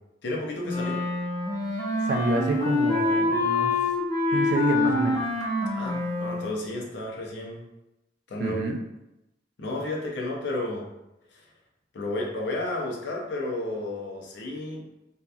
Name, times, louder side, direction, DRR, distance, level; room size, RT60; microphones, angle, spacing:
voice 1, 0.2-1.0 5.7-7.7 8.3-8.6 9.6-10.9 11.3-11.4 11.9-14.8, left 2 dB, 70° left, -1 dB, 0.6 m, -32 dB
Wind instrument woodwind instrument, 0.6-6.5, left 2 dB, 20° left, 0.4 m, -26 dB
voice 2, 2.1-3.8 4.3-5.2 8.4-8.8, right 2 dB, 60° right, 3 dB, 0.4 m, -28 dB
2.8 x 2.4 x 2.3 m, 0.92 s
head